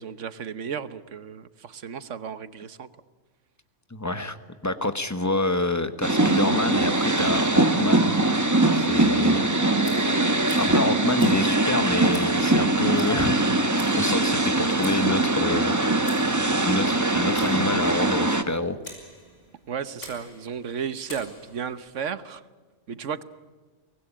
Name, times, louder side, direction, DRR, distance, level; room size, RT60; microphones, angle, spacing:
voice 1, 0.0-2.9 10.7-10.8 19.7-22.4 22.9-23.2, right 7 dB, 85° right, 14 dB, 1.4 m, -34 dB
voice 2, 3.9-4.4 4.6-8.2 8.7-9.5 10.6-15.7 16.6-18.8, left 2 dB, 15° left, 10 dB, 1.2 m, -27 dB
sound 1, 6.0-18.4, right 2 dB, 15° right, 1.2 m, -22 dB
Tick, 9.8-21.9, left 1 dB, 85° left, 6.4 m, -47 dB
24.5 x 19.5 x 10.0 m, 1.4 s
omnidirectional pair, 1.2 m